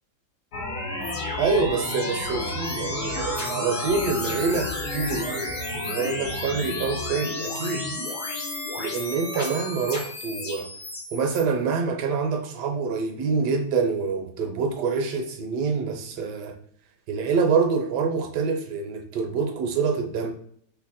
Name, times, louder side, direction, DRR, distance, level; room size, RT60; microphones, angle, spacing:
sound 1, 0.5-11.4, left 1 dB, 50° left, 1.3 m, -31 dB
voice 1, 1.4-7.9 8.8-10.7 11.1-16.6 17.1-20.3, right 5 dB, 70° right, 1.2 m, -26 dB
3.0 x 2.8 x 4.1 m
omnidirectional pair, 2.0 m